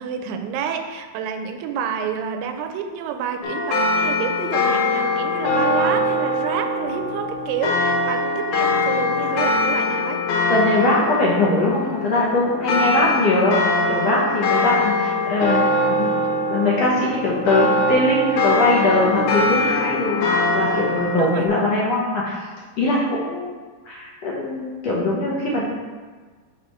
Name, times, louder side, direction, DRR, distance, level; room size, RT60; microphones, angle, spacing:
voice 1, 0.0-10.2 12.6-12.8 14.5-14.7 18.9-19.3 21.2-21.5, right 7 dB, 80° right, 7 dB, 2.2 m, -29 dB
sound 1, 3.4-21.5, left 2 dB, 85° left, 2.9 m, -22 dB
voice 2, 10.5-13.5 13.9-16.1 16.5-22.3 22.8-23.5 23.8-25.6, left 2 dB, 70° left, -5 dB, 1.5 m, -21 dB
6.3 x 4.0 x 5.4 m, 1.4 s
omnidirectional pair, 4.1 m